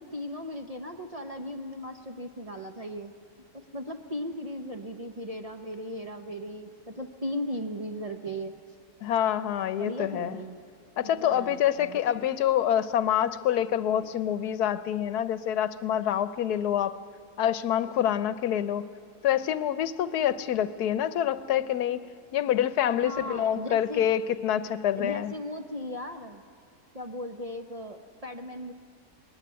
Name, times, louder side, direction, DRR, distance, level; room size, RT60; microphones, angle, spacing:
voice 1, 0.0-3.1 3.5-8.5 9.8-10.6 11.0-12.0 23.0-24.1 25.0-26.4 26.9-28.7, equal, 30° right, 5 dB, 0.7 m, -37 dB
voice 2, 9.0-10.4 11.0-17.0 17.4-18.8 19.2-22.0 22.3-25.3, left 10 dB, 80° left, 14 dB, 1.3 m, -26 dB
20.5 x 16.5 x 9.6 m, 2.4 s
omnidirectional pair, 1.6 m